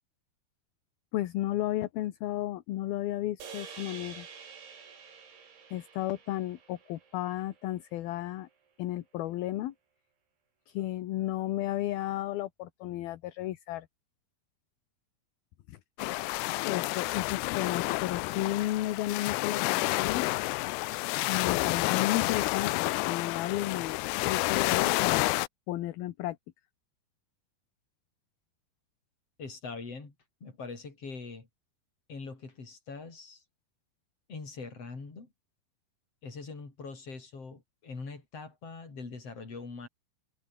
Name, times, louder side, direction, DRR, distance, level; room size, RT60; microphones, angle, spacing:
voice 1, 1.1-4.3 5.7-8.5 8.8-9.7 10.7-13.9 15.7-15.8 16.7-20.3 21.3-25.4 25.7-26.4, left 14 dB, 70° left, 2.7 m, -33 dB
sound 1, 3.4-7.8, right 6 dB, 90° right, 7.9 m, -48 dB
sound 2, 16.0-25.5, left 22 dB, 85° left, 2.5 m, -29 dB
voice 2, 29.4-30.1 30.4-31.5 32.1-33.4 34.3-35.3 36.2-39.9, left 4 dB, 35° left, 6.2 m, -42 dB
omnidirectional pair, 5.2 m